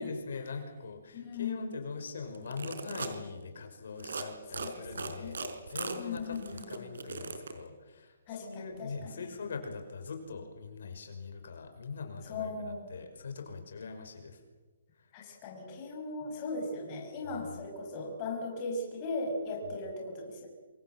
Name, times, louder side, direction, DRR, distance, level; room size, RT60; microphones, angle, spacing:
voice 1, 0.0-14.4 15.0-15.1, left 4 dB, 65° left, 5 dB, 5.7 m, -42 dB
voice 2, 1.1-1.7 4.6-5.4 5.9-6.9 8.3-9.2 12.2-12.9 15.1-20.5, left 3 dB, 25° left, 1 dB, 5.8 m, -38 dB
sound 1, 2.3-3.2 3.9-4.2 4.5-7.5, right 4 dB, 85° right, 4.6 m, -38 dB
27.5 x 24.0 x 7.8 m, 1.2 s
hypercardioid pair, 175°, 0 cm